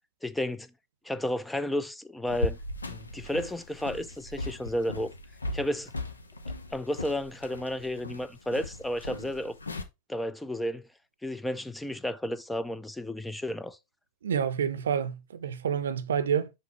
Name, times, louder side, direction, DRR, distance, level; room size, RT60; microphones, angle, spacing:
voice 1, 0.2-0.7 1.0-2.6 2.9-5.1 5.5-5.9 6.7-9.5 10.1-10.9 11.2-13.8, left 1 dB, 5° left, 0.4 m, -32 dB
sound 1, 2.3-9.8, left 2 dB, 75° left, 0.8 m, -38 dB
voice 2, 14.2-16.5, right 7 dB, 65° right, 0.6 m, -28 dB
5.8 x 5.1 x 3.1 m
figure-of-eight pair, 90°, 0 cm